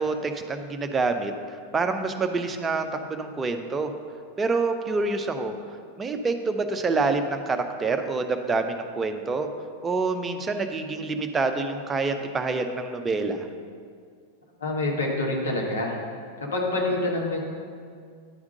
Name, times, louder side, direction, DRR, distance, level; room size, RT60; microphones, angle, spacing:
voice 1, 0.0-3.9 4.4-5.6 6.0-9.5 9.8-13.5, right 3 dB, 15° right, 6 dB, 0.5 m, -27 dB
voice 2, 14.6-15.9 16.5-17.4, left 2 dB, 65° left, -1 dB, 1.2 m, -26 dB
9.8 x 3.6 x 6.2 m, 2.1 s
figure-of-eight pair, 90°, 0 cm